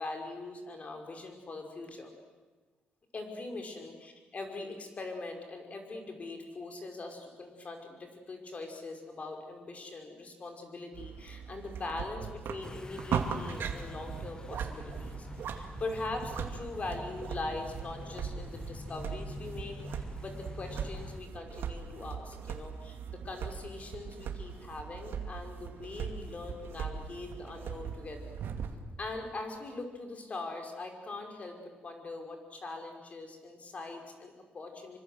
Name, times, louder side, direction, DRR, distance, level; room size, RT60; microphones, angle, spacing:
voice 1, 0.0-2.1 3.1-28.4 29.0-31.6 31.8-35.0, left 2 dB, 40° left, 4 dB, 5.4 m, -42 dB
sound 1, 10.9-28.8, right 7 dB, 75° right, 2.4 m, -39 dB
sound 2, 12.6-21.2, left 2 dB, 20° left, 1.3 m, -46 dB
26.0 x 25.0 x 7.9 m, 1.3 s
cardioid pair, 105°, 4 cm